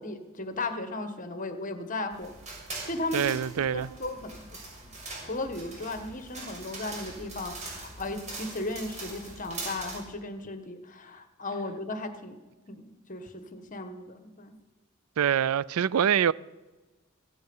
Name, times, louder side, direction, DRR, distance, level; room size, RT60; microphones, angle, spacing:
voice 1, 0.0-2.4 2.8-3.3 3.7-4.5 4.8-4.9 5.2-12.4 12.7-14.6, left 2 dB, 40° left, 1.5 m, -36 dB
sound 1, 2.1-10.0, right 3 dB, 35° right, 6.2 m, -42 dB
voice 2, 3.1-3.9 15.2-16.3, right 8 dB, 90° right, 0.4 m, -25 dB
15.5 x 15.0 x 5.5 m
head